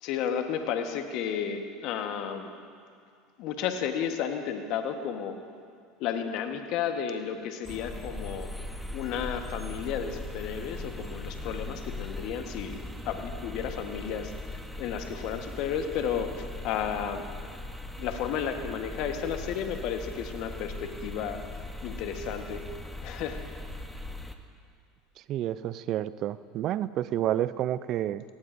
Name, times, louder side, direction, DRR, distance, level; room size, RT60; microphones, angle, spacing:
voice 1, 0.0-2.5 3.4-5.4 6.0-8.5 8.9-14.3 14.8-17.2 18.0-21.4 21.8-22.6 23.0-23.4, left 8 dB, 60° left, 6 dB, 1.3 m, -32 dB
sound 1, 7.6-24.3, left 2 dB, ahead, 0.9 m, -39 dB
voice 2, 25.3-28.2, right 12 dB, 50° right, 16 dB, 0.4 m, -29 dB
18.0 x 17.0 x 2.6 m, 2.2 s
hypercardioid pair, 90°, 0 cm